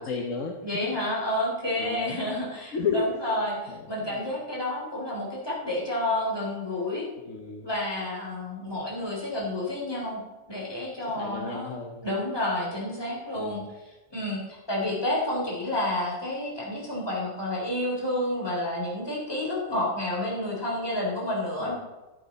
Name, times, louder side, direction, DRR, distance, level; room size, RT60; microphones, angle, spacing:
voice 1, 0.0-0.8 1.7-2.2 2.7-3.1 3.7-4.2 7.2-7.7 11.0-12.1 13.3-13.6 21.6-21.7, left 5 dB, 80° left, 2 dB, 1.4 m, -33 dB
voice 2, 0.6-7.1 7.6-10.2 10.5-11.7 12.0-13.6 14.1-14.4 14.7-21.7, left 1 dB, 20° left, -4 dB, 3.3 m, -30 dB
12.0 x 11.5 x 4.1 m, 1.2 s
omnidirectional pair, 1.3 m